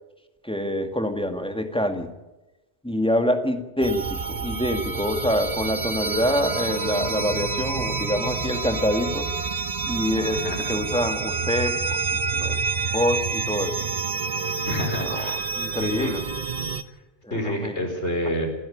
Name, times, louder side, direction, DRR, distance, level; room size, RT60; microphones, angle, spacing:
voice 1, 0.4-2.1 2.8-9.3 9.9-12.6 12.9-13.8 15.0-16.3 17.2-17.8, left 1 dB, 5° left, 6 dB, 1.9 m, -26 dB
sound 1, 3.8-16.8, right 4 dB, 40° right, 1.1 m, -28 dB
voice 2, 14.6-15.4 15.7-16.1 17.3-18.5, left 1 dB, 85° left, 4 dB, 5.0 m, -28 dB
28.5 x 11.0 x 10.0 m, 1.0 s
omnidirectional pair, 1.1 m